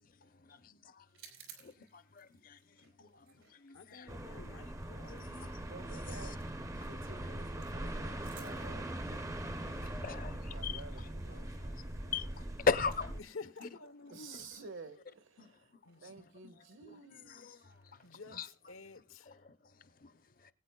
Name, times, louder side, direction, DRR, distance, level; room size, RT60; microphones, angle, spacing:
voice 1, 0.5-1.0 1.6-2.6 3.0-3.2 3.6-4.1 5.0-5.2 9.9-10.8 12.1-13.2 13.6-13.7 15.4-15.5 16.8-17.0 17.2-17.8 18.3-18.5 19.3-19.5 20.0-20.1, left 5 dB, 40° left, 0.6 m, -37 dB
sound 1, 1.1-13.2 13.4-18.7, right 8 dB, 90° right, 3.6 m, -63 dB
voice 2, 3.7-5.6 9.0-9.2 9.5-10.3 13.2-14.5 15.8-16.1 18.0-19.4, left 4 dB, 75° left, 0.9 m, -51 dB
sound 2, 4.1-13.2, right 1 dB, 15° right, 0.5 m, -41 dB
voice 3, 5.3-6.4 6.8-9.0 10.3-12.3 14.1-15.7 16.0-17.7, right 4 dB, 70° right, 1.2 m, -52 dB
21.0 x 9.1 x 2.2 m
head